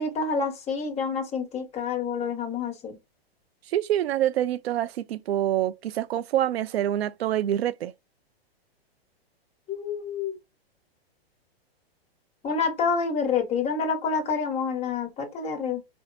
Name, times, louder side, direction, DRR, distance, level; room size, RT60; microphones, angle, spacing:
voice 1, 0.0-3.0 9.7-10.3 12.4-15.8, left 5 dB, 20° left, 1.2 m, -28 dB
voice 2, 3.7-7.9, right 12 dB, 75° right, 0.5 m, -26 dB
4.3 x 2.1 x 2.5 m
hypercardioid pair, 130°, 31 cm